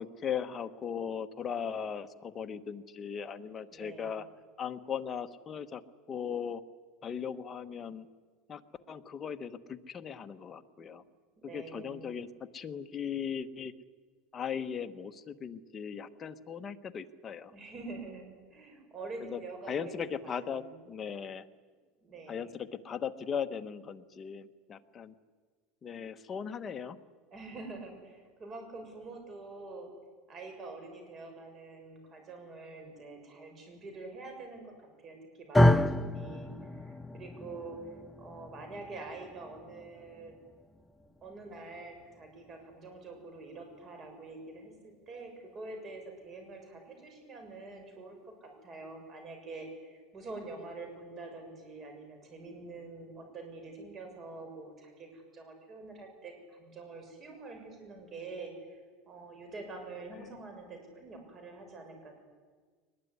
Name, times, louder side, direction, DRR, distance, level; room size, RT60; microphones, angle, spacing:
voice 1, 0.0-4.2 4.6-5.8 6.1-6.6 7.0-8.1 8.5-8.6 8.9-11.0 11.4-13.7 14.3-17.5 19.3-19.4 19.7-21.5 22.3-25.1 25.8-27.0 60.1-60.3, left 7 dB, 25° left, 8 dB, 1.2 m, -38 dB
voice 2, 3.7-4.2 10.8-10.9 11.4-12.1 17.5-20.7 22.0-22.5 27.3-29.9 30.3-37.8 38.2-40.3 41.2-58.5 59.1-62.1, right 3 dB, 30° right, 5 dB, 6.6 m, -46 dB
sound 1, 35.5-43.8, left 1 dB, 5° left, 0.7 m, -31 dB
22.0 x 20.5 x 9.7 m, 1.5 s
supercardioid pair, 135°, 0 cm